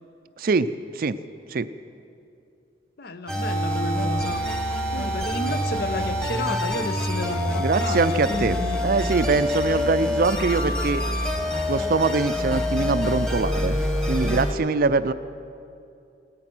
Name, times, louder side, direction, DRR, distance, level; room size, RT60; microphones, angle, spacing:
voice 1, 0.4-0.7 1.0-1.2 1.5-1.7 7.6-8.6 8.8-11.0 11.7-13.8 14.1-15.1, right 4 dB, 50° right, 14 dB, 0.4 m, -23 dB
voice 2, 3.0-4.4 4.9-8.8, left 2 dB, 55° left, 11 dB, 0.7 m, -31 dB
sound 1, 3.3-14.5, left 1 dB, 5° left, 1.3 m, -26 dB
18.0 x 13.5 x 6.1 m, 2.6 s
head